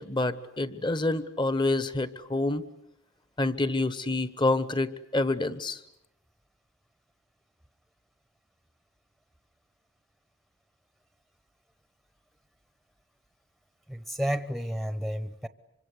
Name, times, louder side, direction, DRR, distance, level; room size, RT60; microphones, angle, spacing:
voice 1, 0.0-2.6 3.4-5.8, left 2 dB, 25° left, 14 dB, 1.2 m, -27 dB
voice 2, 13.9-15.5, equal, ahead, 11 dB, 1.0 m, -31 dB
26.5 x 25.0 x 8.4 m, 0.78 s
head